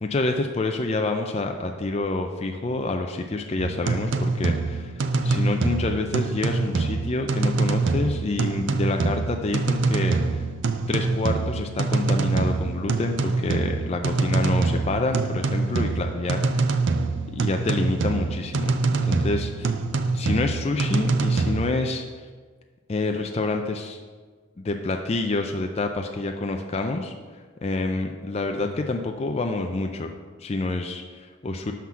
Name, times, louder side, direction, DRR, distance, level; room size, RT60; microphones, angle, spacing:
voice 1, 0.0-10.4 10.9-16.6 17.3-18.7 19.0-19.7 20.2-22.0 22.9-24.0 24.6-27.1 27.6-30.1 30.4-31.7, left 2 dB, 30° left, 4 dB, 0.4 m, -27 dB
sound 1, 3.6-21.7, right 3 dB, 55° right, 0.4 m, -25 dB
5.8 x 5.8 x 6.1 m, 1.5 s
head